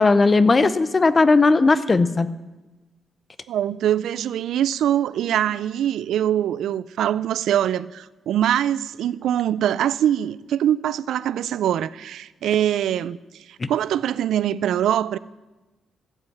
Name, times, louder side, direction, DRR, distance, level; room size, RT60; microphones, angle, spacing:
voice 1, 0.0-2.3 13.6-13.7, left 3 dB, 25° left, 0.6 m, -17 dB
voice 2, 3.5-13.2 13.7-15.2, right 10 dB, 80° right, 0.4 m, -23 dB
14.0 x 7.8 x 7.2 m
cardioid pair, 140°, 0 cm